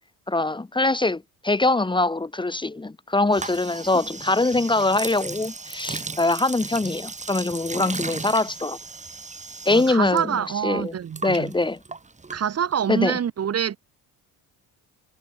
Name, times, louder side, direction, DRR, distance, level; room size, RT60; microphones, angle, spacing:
voice 1, 0.3-8.8 9.7-10.3 10.6-10.9 11.2-11.8 12.9-13.2, left 2 dB, 15° left, 2.2 m, -23 dB
sound 1, 3.3-10.2 10.5-12.9, right 4 dB, 20° right, 6.9 m, -36 dB
voice 2, 9.7-11.5 12.3-13.8, right 8 dB, 40° right, 3.6 m, -26 dB
cardioid pair, 115°, 36 cm